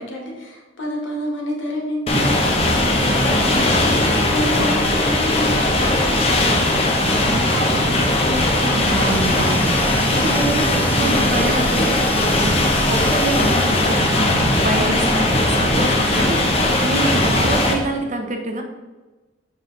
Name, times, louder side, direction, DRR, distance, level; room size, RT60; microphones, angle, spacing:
voice 1, 0.0-8.1 14.7-14.9, equal, 75° left, 0 dB, 1.8 m, -29 dB
sound 1, 2.1-17.7, left 1 dB, 30° left, 1.0 m, -18 dB
voice 2, 7.8-14.3 14.6-18.6, right 2 dB, 40° right, 3 dB, 0.8 m, -26 dB
sound 2, 8.4-14.3, left 1 dB, 10° left, 0.5 m, -32 dB
7.4 x 5.2 x 4.0 m, 1.2 s
head